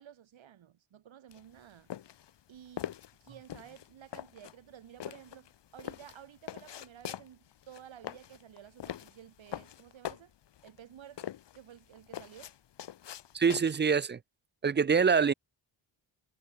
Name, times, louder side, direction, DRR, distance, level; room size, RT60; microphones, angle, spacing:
voice 1, 0.0-1.9 2.5-2.9 3.2-10.3 10.6-12.6, right 10 dB, 70° right, 5.1 m, -53 dB
sound 1, 1.3-14.0, left 11 dB, 60° left, 1.3 m, -43 dB
voice 2, 13.3-14.2 14.6-15.3, right 6 dB, 25° right, 0.4 m, -25 dB
wide cardioid pair, 175°, 48 cm